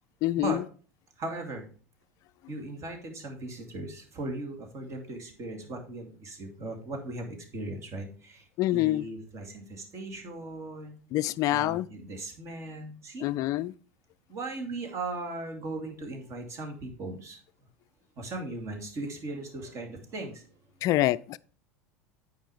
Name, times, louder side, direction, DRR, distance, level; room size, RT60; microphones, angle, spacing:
voice 1, 0.2-0.6 8.6-9.1 11.1-11.9 13.2-13.7 20.8-21.4, left 15 dB, 45° left, 0.4 m, -26 dB
voice 2, 1.2-1.7 2.5-8.4 8.7-11.0 11.5-13.3 14.3-17.4 18.2-20.4, right 2 dB, 40° right, 2.6 m, -38 dB
9.0 x 5.2 x 4.9 m
hypercardioid pair, 80°, 8 cm